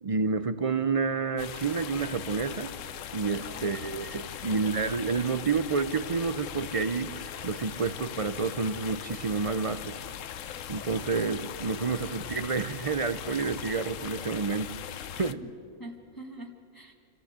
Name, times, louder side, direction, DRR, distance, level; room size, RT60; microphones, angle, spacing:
voice 1, 0.0-2.7 3.1-7.2 7.4-10.0 10.7-14.8 15.1-15.4, right 4 dB, 40° right, 12 dB, 0.5 m, -29 dB
sound 1, 1.4-15.3, left 9 dB, 65° left, 1.0 m, -40 dB
voice 2, 3.4-3.8 4.3-4.4 15.3-15.5 15.8-16.9, right 1 dB, 15° left, 2 dB, 1.6 m, -45 dB
27.0 x 15.0 x 8.2 m, 2.7 s
omnidirectional pair, 1.5 m